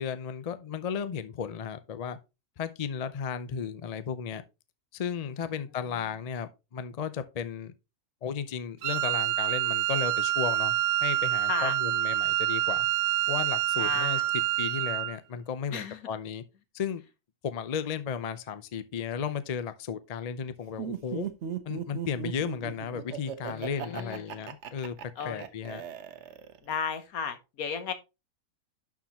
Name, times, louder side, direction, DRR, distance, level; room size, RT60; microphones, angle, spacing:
voice 1, 0.0-2.2 2.6-4.4 4.9-7.7 8.2-12.9 13.3-14.2 14.6-16.4 16.7-17.0 17.4-21.3 21.6-25.0 25.2-25.8, left 7 dB, 55° left, 0.4 m, -34 dB
Wind instrument woodwind instrument, 8.8-15.2, right 14 dB, 90° right, 1.1 m, -27 dB
voice 2, 13.8-14.2 15.7-16.0 23.5-24.2 25.2-25.8 26.6-27.9, left 7 dB, 75° left, 1.5 m, -35 dB
Laughter, 20.8-26.7, right 8 dB, 55° right, 0.9 m, -37 dB
11.5 x 4.8 x 2.9 m
omnidirectional pair, 1.5 m